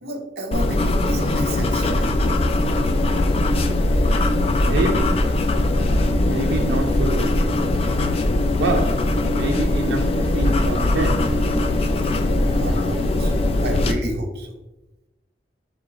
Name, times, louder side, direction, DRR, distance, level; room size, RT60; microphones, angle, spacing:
voice 1, 0.0-2.2 11.7-11.9 12.3-14.5, right 1 dB, 65° right, 0.8 m, -31 dB
sound 1, 0.5-13.9, left 2 dB, 35° left, 0.3 m, -20 dB
voice 2, 4.6-5.4 6.0-7.5 8.6-11.4, right 3 dB, 90° right, 0.4 m, -27 dB
4.8 x 3.8 x 2.4 m
head